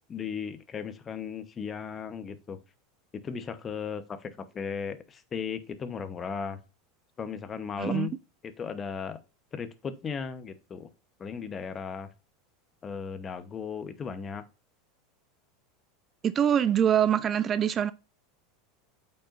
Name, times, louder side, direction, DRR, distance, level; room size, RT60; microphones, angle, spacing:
voice 1, 0.0-2.6 3.2-6.6 7.2-8.1 8.4-9.2 9.5-10.9 11.2-12.1 12.8-14.4, left 6 dB, 30° left, 0.9 m, -36 dB
voice 2, 7.8-8.1 16.2-17.9, right 9 dB, 35° right, 0.4 m, -24 dB
8.4 x 5.5 x 2.6 m
hypercardioid pair, 100°, 0 cm